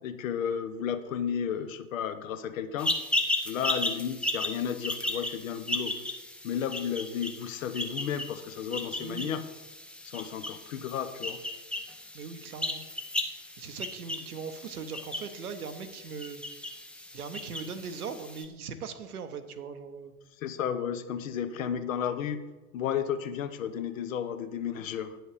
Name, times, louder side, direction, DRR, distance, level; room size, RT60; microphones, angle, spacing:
voice 1, 0.0-3.0 3.4-5.9 6.4-9.4 10.0-11.4 20.4-22.4 22.7-25.2, left 8 dB, 60° left, 10 dB, 0.9 m, -33 dB
sound 1, 2.8-18.5, left 1 dB, ahead, 0.5 m, -35 dB
voice 2, 9.0-9.4 12.1-12.8 13.6-16.4 17.1-20.1, right 5 dB, 75° right, 9 dB, 1.0 m, -40 dB
9.3 x 6.2 x 4.9 m, 1.1 s
figure-of-eight pair, 90°, 45 cm